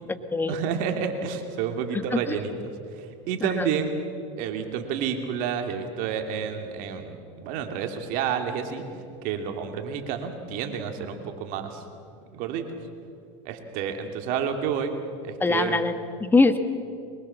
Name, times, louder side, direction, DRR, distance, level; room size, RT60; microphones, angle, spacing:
voice 1, 0.5-3.9 4.4-8.9 9.2-11.8 12.3-12.6 13.4-15.0 15.2-15.8, right 7 dB, 60° right, 5 dB, 2.8 m, -30 dB
voice 2, 1.9-2.4 3.4-3.7 15.4-16.6, left 3 dB, 10° left, 9 dB, 1.4 m, -23 dB
23.5 x 21.5 x 7.2 m, 2.5 s
supercardioid pair, 125°, 16 cm